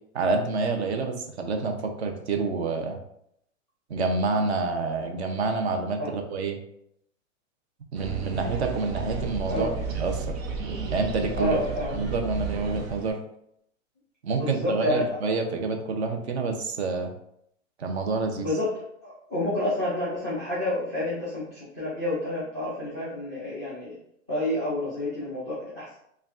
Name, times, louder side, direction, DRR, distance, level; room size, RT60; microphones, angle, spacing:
voice 1, 0.1-3.0 3.9-6.6 7.9-10.4 10.9-11.6 11.9-13.2 14.2-17.1 17.8-18.5, right 3 dB, 55° right, 4 dB, 0.7 m, -28 dB
sound 1, 7.9-13.1, right 4 dB, 90° right, 0.9 m, -33 dB
voice 2, 11.3-12.0 14.4-15.0 18.4-18.7 19.0-24.0 24.3-25.9, left 1 dB, 15° right, -8 dB, 0.4 m, -29 dB
5.5 x 2.3 x 2.4 m, 0.73 s
hypercardioid pair, 180°, 39 cm